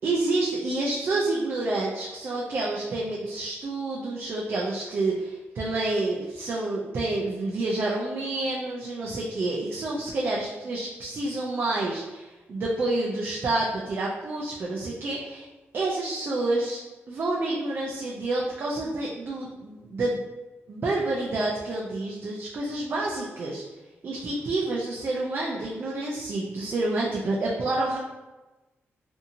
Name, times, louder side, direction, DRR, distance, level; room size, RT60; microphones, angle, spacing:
voice 1, 0.0-15.5 15.7-16.8 17.1-20.2 20.7-23.6 24.0-28.0, right 2 dB, 50° right, -3 dB, 0.4 m, -28 dB
2.7 x 2.6 x 2.5 m, 1.1 s
wide cardioid pair, 145°, 5 cm